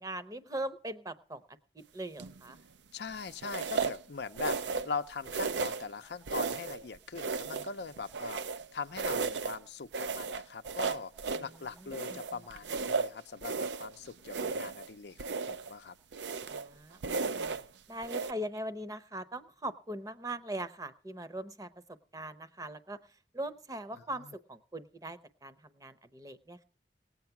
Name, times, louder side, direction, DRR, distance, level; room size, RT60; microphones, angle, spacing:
voice 1, 0.0-1.4 1.7-2.6 11.4-11.5 11.8-12.2 16.5-17.5 17.9-23.0 23.3-26.6, right 1 dB, 20° right, 13 dB, 0.8 m, -41 dB
sound 1, 2.2-2.5 3.4-4.0 4.4-5.0 5.2-5.9 6.3-6.8 7.1-8.7 8.9-9.6 9.9-11.5 11.9-13.9 14.2-14.9 15.2-15.7 16.1-16.7 17.0-17.6 18.0-18.3, right 4 dB, 75° right, 0.5 m, -34 dB
voice 2, 2.9-11.1 11.4-16.0 17.2-17.6 23.9-24.3, left 5 dB, 65° left, 9 dB, 0.6 m, -41 dB
18.5 x 8.1 x 5.8 m, 0.39 s
head